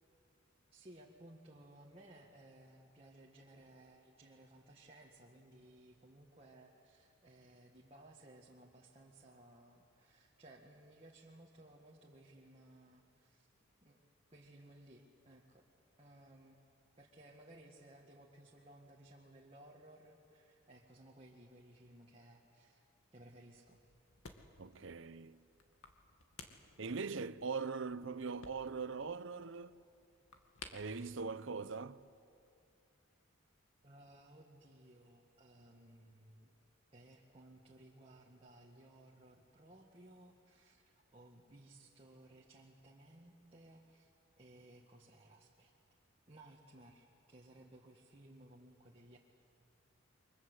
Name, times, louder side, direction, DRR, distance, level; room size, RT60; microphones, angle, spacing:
voice 1, 0.7-13.5 13.8-14.0 14.3-15.6 16.0-16.6 17.0-22.8 23.1-23.8 33.8-36.5 36.9-44.1 44.4-45.7 46.3-49.2, right 1 dB, 25° right, 1.8 m, -60 dB
sound 1, 23.5-32.3, left 4 dB, 80° left, 2.3 m, -59 dB
voice 2, 24.6-25.4 26.8-29.8 30.7-32.0, right 4 dB, 60° right, 0.7 m, -41 dB
29.0 x 24.0 x 8.1 m
head